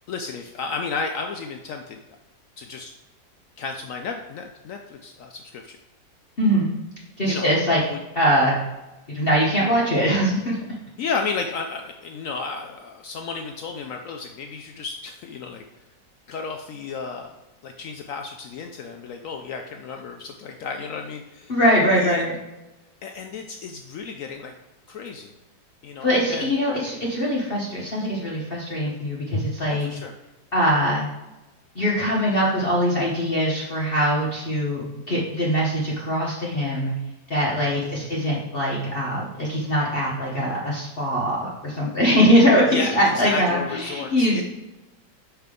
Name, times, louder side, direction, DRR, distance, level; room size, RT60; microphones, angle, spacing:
voice 1, 0.1-2.0 2.6-2.9 3.6-5.8 7.2-7.5 7.9-8.0 11.0-15.6 16.3-21.5 22.0-22.2 23.0-24.5 24.9-25.3 25.8-26.5 29.7-30.1 37.8-38.1 42.7-44.4, left 5 dB, 80° left, 4 dB, 0.7 m, -33 dB
voice 2, 6.4-6.7 7.2-7.8 8.1-8.6 9.1-10.6 21.5-22.3 26.0-29.9 30.5-31.1 31.7-36.9 37.3-44.4, equal, 40° left, -5 dB, 1.0 m, -22 dB
5.7 x 5.7 x 3.7 m, 1.0 s
omnidirectional pair, 1.9 m